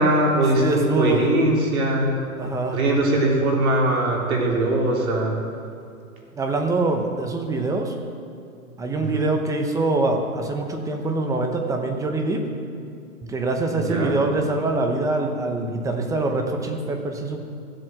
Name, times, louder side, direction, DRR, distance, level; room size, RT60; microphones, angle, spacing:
voice 1, 0.0-2.2 2.7-5.4 9.0-9.2 13.7-14.2, right 1 dB, 75° right, -1 dB, 3.6 m, -21 dB
voice 2, 0.5-1.2 2.4-2.8 6.3-7.9 8.8-12.4 13.3-17.4, right 2 dB, 10° right, 4 dB, 0.8 m, -24 dB
14.5 x 7.8 x 7.6 m, 2.4 s
hypercardioid pair, 145°, 43 cm